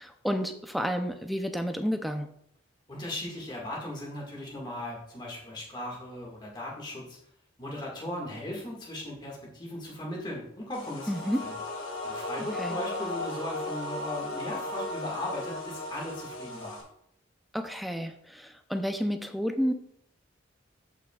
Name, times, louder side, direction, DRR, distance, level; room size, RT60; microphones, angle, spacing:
voice 1, 0.0-2.3 11.1-11.4 12.6-12.8 17.5-19.7, equal, ahead, 6 dB, 0.6 m, -30 dB
voice 2, 2.9-7.2 7.6-11.1 11.4-11.5 12.0-16.8, left 1 dB, 25° left, -3 dB, 1.9 m, -37 dB
sound 1, 10.7-16.8, left 2 dB, 85° left, 2.8 m, -36 dB
14.5 x 5.9 x 2.4 m, 0.73 s
head